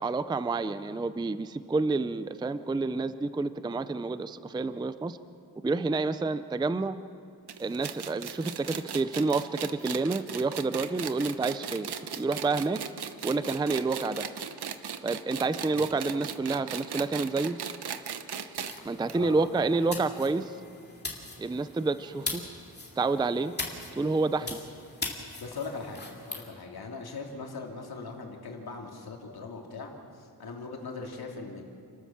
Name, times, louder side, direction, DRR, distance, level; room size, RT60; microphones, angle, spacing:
voice 1, 0.0-5.2 5.6-7.0 7.6-12.8 13.2-14.3 15.0-17.6 18.8-20.5 21.4-22.4 23.0-23.5 24.0-24.6, right 3 dB, 10° right, 13 dB, 0.4 m, -29 dB
sound 1, 7.5-18.8 19.1-19.2 19.5-19.6 20.4-20.5, right 8 dB, 75° right, 1.0 m, -37 dB
sound 2, 18.6-26.4, left 3 dB, 25° left, 2.5 m, -40 dB
voice 2, 19.1-19.7 24.4-24.5 25.4-26.0 26.3-31.6, left 4 dB, 65° left, 0 dB, 2.9 m, -40 dB
29.5 x 12.5 x 7.4 m, 2.4 s
wide cardioid pair, 170°, 39 cm